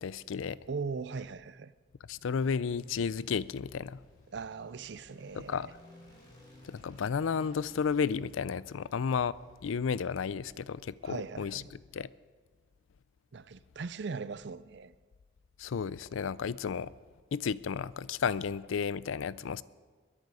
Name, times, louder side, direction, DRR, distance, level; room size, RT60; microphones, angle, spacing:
voice 1, 0.0-0.6 2.1-4.0 5.5-5.7 6.6-9.4 9.6-11.6 11.9-12.1 15.6-16.9 17.3-19.6, left 6 dB, 80° left, 0.4 m, -32 dB
voice 2, 0.7-1.7 4.3-5.7 11.0-11.7 13.3-14.9, right 4 dB, 60° right, 0.5 m, -39 dB
sound 1, 1.8-10.2, equal, 20° left, 4.2 m, -57 dB
21.5 x 10.5 x 4.9 m
head